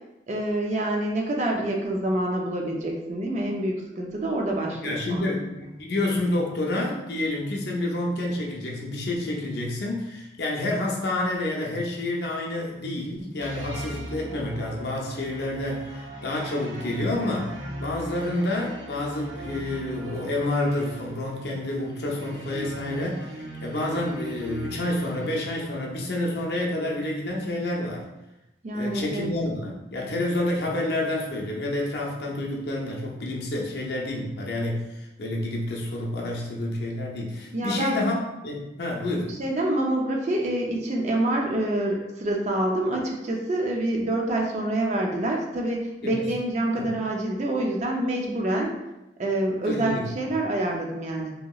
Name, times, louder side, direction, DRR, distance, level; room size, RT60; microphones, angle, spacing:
voice 1, 0.3-5.3 28.6-29.3 37.5-38.0 39.3-48.7 49.2-51.3, right 1 dB, 35° right, 0 dB, 0.4 m, -27 dB
voice 2, 4.8-28.1 28.7-38.2 38.4-39.3 46.0-46.2 46.7-46.9 49.6-50.0, left 1 dB, 60° left, -1 dB, 0.5 m, -29 dB
sound 1, 13.4-25.9, right 1 dB, 70° right, 0.7 m, -39 dB
2.8 x 2.8 x 2.3 m, 0.95 s
head